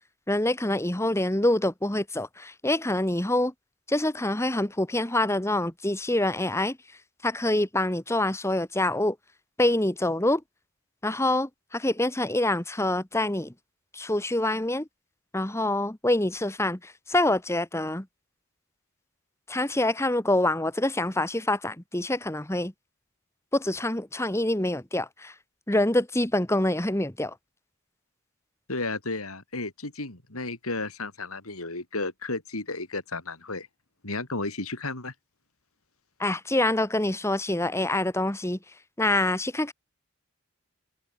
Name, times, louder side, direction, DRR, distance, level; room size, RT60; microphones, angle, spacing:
voice 1, 0.3-3.5 3.9-6.8 7.2-9.2 9.6-10.4 11.0-13.5 13.9-14.9 15.3-18.1 19.5-22.7 23.5-25.3 25.7-27.3 36.2-38.6 39.0-39.7, left 1 dB, 10° left, 1.3 m, -26 dB
voice 2, 28.7-33.7 34.0-35.1, left 2 dB, 85° left, 5.0 m, -33 dB
head